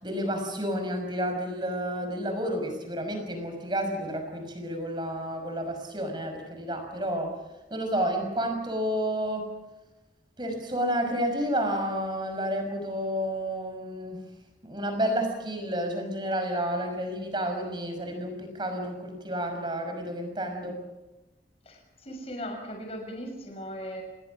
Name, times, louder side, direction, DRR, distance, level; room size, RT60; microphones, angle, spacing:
voice 1, 0.0-7.4 7.7-9.5 10.4-14.2 14.6-20.8, equal, 25° right, 5 dB, 5.8 m, -30 dB
voice 2, 21.6-24.0, equal, 35° left, 3 dB, 6.6 m, -38 dB
29.0 x 20.0 x 6.3 m, 1.1 s
head